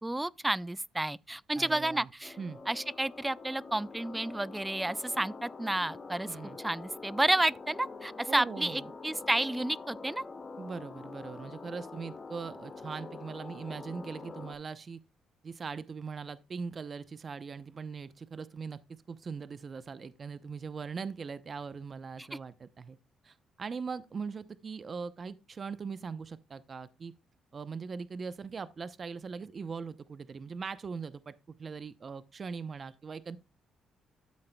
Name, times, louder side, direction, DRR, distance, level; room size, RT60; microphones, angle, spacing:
voice 1, 0.0-2.4 2.7-6.3 6.6-10.2 22.2-22.4, right 1 dB, 10° right, 0.4 m, -31 dB
voice 2, 1.6-2.1 2.4-2.6 6.2-6.6 8.3-8.8 10.6-15.0 15.4-18.8 19.1-23.0 23.2-27.1 27.5-33.4, right 5 dB, 40° right, 0.8 m, -40 dB
sound 1, 2.2-14.5, left 4 dB, 30° left, 2.3 m, -46 dB
13.0 x 7.7 x 2.3 m
cardioid pair, 90°, 0 cm